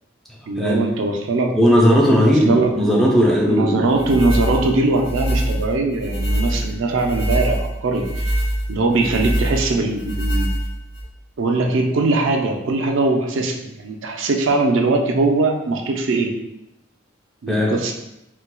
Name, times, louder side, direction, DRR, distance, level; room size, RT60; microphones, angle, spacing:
voice 1, 0.5-1.5 2.2-2.7 3.5-8.3 8.7-10.5 11.4-16.4 17.4-17.9, right 3 dB, 70° right, 2 dB, 0.4 m, -21 dB
voice 2, 1.5-3.8 17.5-17.7, equal, ahead, -3 dB, 0.4 m, -16 dB
sound 1, 3.9-11.0, right 1 dB, 65° left, 0.8 m, -23 dB
4.1 x 2.2 x 2.2 m, 0.87 s
head